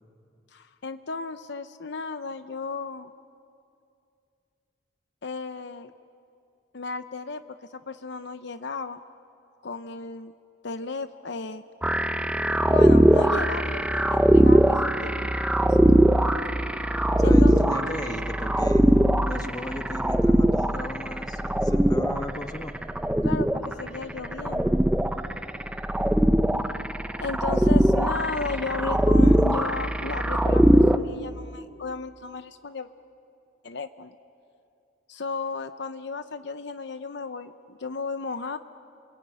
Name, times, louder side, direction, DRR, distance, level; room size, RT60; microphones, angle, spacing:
voice 1, 0.5-3.1 5.2-5.9 6.7-9.0 9.6-10.3 10.6-11.6 12.6-16.2 17.2-17.6 23.2-24.8 27.2-32.9 33.6-34.1 35.1-38.6, left 4 dB, 65° left, 10 dB, 0.8 m, -34 dB
sound 1, 11.8-31.0, right 1 dB, 5° right, 0.7 m, -21 dB
voice 2, 17.2-18.9 19.3-22.8, left 1 dB, 20° left, 6 dB, 1.5 m, -36 dB
29.5 x 22.0 x 9.3 m, 2.5 s
head